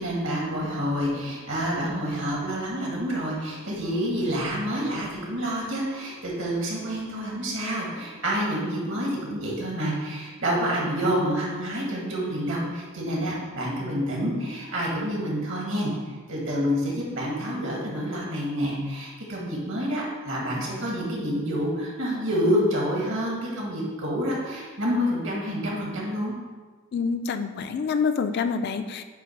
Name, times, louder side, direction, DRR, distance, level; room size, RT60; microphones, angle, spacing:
voice 1, 0.0-15.9 16.3-26.3, equal, 65° right, -3 dB, 1.6 m, -28 dB
voice 2, 26.9-29.0, left 5 dB, 50° left, 9 dB, 0.3 m, -27 dB
7.9 x 2.8 x 4.6 m, 1.4 s
head